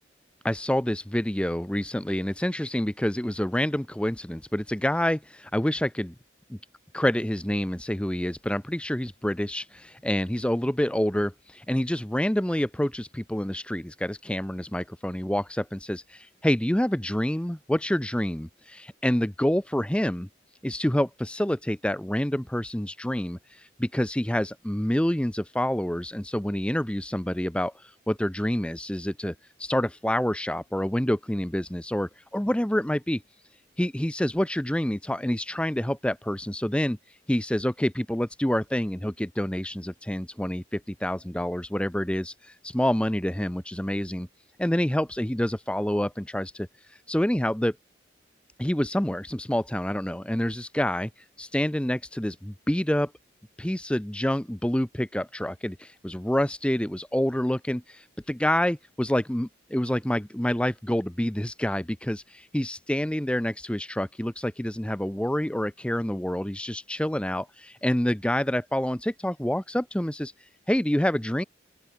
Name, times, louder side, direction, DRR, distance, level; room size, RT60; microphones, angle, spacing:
voice 1, 0.4-6.1 6.5-6.6 6.9-20.3 20.6-33.2 33.8-44.3 44.6-47.8 48.6-53.1 53.6-71.4, equal, 5° left, 0.6 m, -27 dB
open air
head